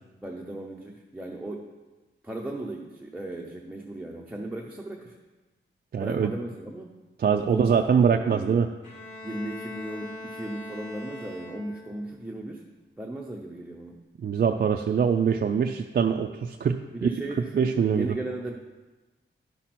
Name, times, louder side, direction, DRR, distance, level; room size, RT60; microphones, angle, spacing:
voice 1, 0.2-1.6 2.2-5.2 6.0-7.0 7.5-8.5 9.2-12.6 13.0-14.0 16.9-18.5, right 1 dB, 5° right, -1 dB, 0.6 m, -36 dB
voice 2, 5.9-6.3 7.2-8.7 14.2-17.1 17.5-18.1, right 6 dB, 50° right, 4 dB, 0.4 m, -23 dB
Bowed string instrument, 8.8-12.1, left 1 dB, 35° left, 2.8 m, -41 dB
10.5 x 5.9 x 4.2 m, 1.2 s
wide cardioid pair, 150°, 21 cm